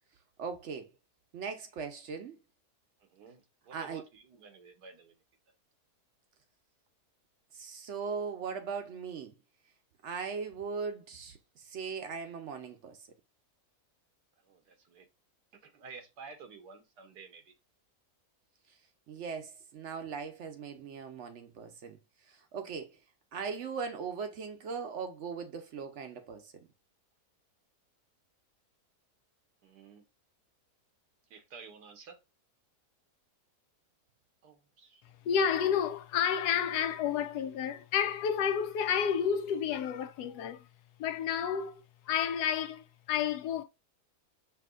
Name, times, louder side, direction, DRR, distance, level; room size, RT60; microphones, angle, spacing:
voice 1, 0.4-0.9 1.3-2.4 3.7-4.0 7.5-9.3 10.0-13.0 19.1-22.0 22.3-23.0 23.3-26.7, right 5 dB, 65° right, 0.8 m, -39 dB
voice 2, 3.0-5.2 14.4-15.1 15.6-17.5 29.6-30.0 31.3-32.2 34.4-35.0, right 5 dB, 90° right, 1.5 m, -52 dB
voice 3, 35.2-40.7 41.0-43.6, left 8 dB, 85° left, 1.1 m, -30 dB
5.8 x 2.8 x 2.4 m
omnidirectional pair, 1.7 m